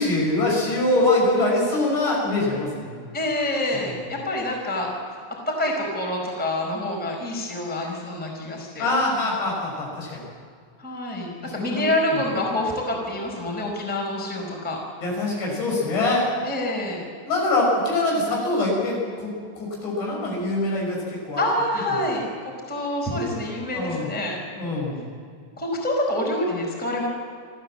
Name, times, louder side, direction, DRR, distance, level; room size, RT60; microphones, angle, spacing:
voice 1, 0.0-3.0 3.9-4.0 8.8-10.2 11.4-11.8 15.0-16.3 17.3-21.0 21.3-21.4 23.7-24.1 24.6-25.0, left 2 dB, 60° left, -2 dB, 7.6 m, -24 dB
voice 2, 3.1-4.9 5.5-8.9 10.8-14.8 16.4-17.0 21.4-24.4 25.6-27.1, left 1 dB, ahead, -1 dB, 3.8 m, -27 dB
28.0 x 14.0 x 7.6 m, 2.2 s
omnidirectional pair, 5.6 m